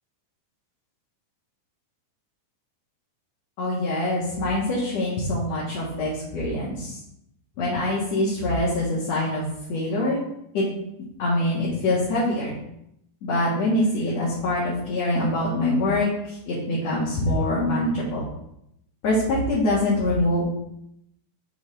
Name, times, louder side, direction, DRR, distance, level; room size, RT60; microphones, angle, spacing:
voice 1, 3.6-7.0 7.6-9.4 9.7-10.2 10.5-10.6 11.2-12.6 13.2-18.2 19.0-20.6, left 1 dB, 55° left, -7 dB, 2.8 m, -24 dB
7.0 x 6.8 x 3.7 m, 0.77 s
omnidirectional pair, 4.0 m